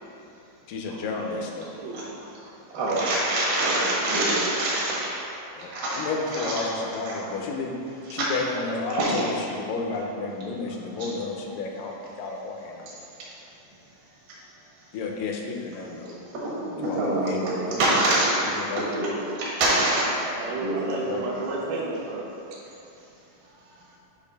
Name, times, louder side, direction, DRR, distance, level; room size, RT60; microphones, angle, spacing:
voice 1, 0.7-1.8 4.1-4.3 5.6-7.8 8.1-12.9 14.9-16.1 16.8-17.8 18.6-18.8 21.1-21.4, left 3 dB, 80° left, 1 dB, 2.2 m, -32 dB
voice 2, 1.8-2.2 19.5-19.8 20.2-22.6, right 3 dB, 85° right, -3 dB, 2.7 m, -33 dB
voice 3, 2.7-5.2 5.7-6.6 7.0-7.2 8.1-8.3 8.9-9.2 11.0-11.1 16.0-16.1 16.4-18.5 18.8-20.3 20.6-20.9, right 1 dB, 65° right, -6 dB, 1.1 m, -25 dB
8.4 x 3.0 x 5.2 m, 2.7 s
omnidirectional pair, 4.1 m